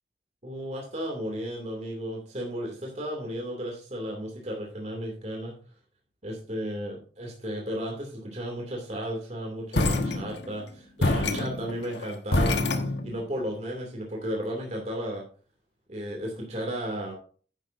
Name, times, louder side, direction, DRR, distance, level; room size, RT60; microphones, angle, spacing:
voice 1, 0.4-5.5 6.2-12.6 13.0-15.2 15.9-17.1, equal, 40° right, 0 dB, 2.6 m, -34 dB
sound 1, 9.7-10.6 11.0-13.4, left 2 dB, 80° left, 1.4 m, -26 dB
10.5 x 9.9 x 2.7 m, 0.41 s
head